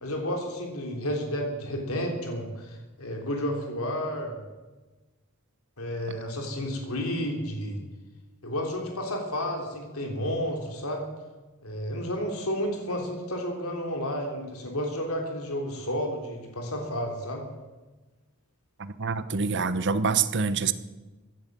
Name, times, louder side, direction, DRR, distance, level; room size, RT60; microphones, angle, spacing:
voice 1, 0.0-4.4 5.8-7.8 8.4-11.0 11.6-17.4, equal, 75° left, 2 dB, 3.4 m, -31 dB
voice 2, 18.8-20.7, right 5 dB, 55° right, 13 dB, 0.9 m, -26 dB
16.5 x 10.5 x 7.5 m, 1.2 s
head